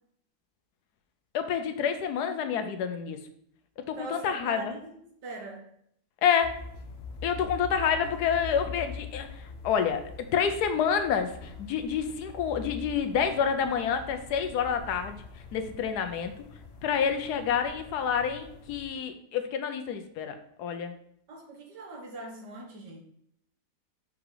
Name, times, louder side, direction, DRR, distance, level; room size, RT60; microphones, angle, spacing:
voice 1, 1.3-3.2 3.9-4.7 6.2-6.6 7.2-15.2 15.5-16.3 16.8-20.9, left 7 dB, 75° left, 8 dB, 1.2 m, -28 dB
voice 2, 3.9-4.9 5.2-5.7 8.0-8.2 21.3-23.0, right 2 dB, 85° right, 1 dB, 2.0 m, -42 dB
sound 1, 6.4-18.9, left 4 dB, 55° left, 0.7 m, -44 dB
6.0 x 4.8 x 3.8 m, 0.70 s
omnidirectional pair, 1.8 m